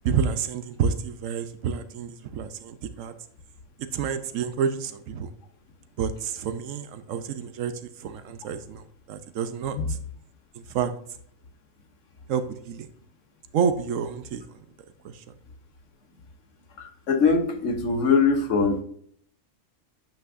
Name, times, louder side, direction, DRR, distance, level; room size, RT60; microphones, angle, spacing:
voice 1, 0.0-3.1 3.8-5.3 6.0-10.0 10.5-10.9 12.3-12.9 13.5-14.4 15.0-15.3, right 7 dB, 85° right, 10 dB, 1.1 m, -29 dB
voice 2, 16.8-18.8, left 5 dB, 75° left, 6 dB, 1.3 m, -22 dB
9.1 x 5.7 x 2.6 m, 0.64 s
omnidirectional pair, 1.3 m